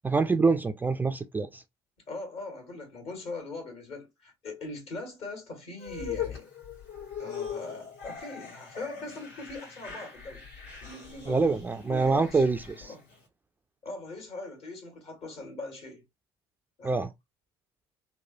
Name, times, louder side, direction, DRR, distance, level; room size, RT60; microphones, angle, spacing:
voice 1, 0.0-1.6 11.3-12.9 16.8-17.1, right 4 dB, 15° right, 0.3 m, -25 dB
voice 2, 2.1-6.5 7.2-10.5 10.8-12.4 12.8-13.0 13.8-16.0 16.8-17.0, left 2 dB, 50° left, 1.6 m, -41 dB
sound 1, 5.8-13.2, left 7 dB, 75° left, 1.6 m, -40 dB
3.1 x 2.1 x 2.5 m
hypercardioid pair, 65°, 13 cm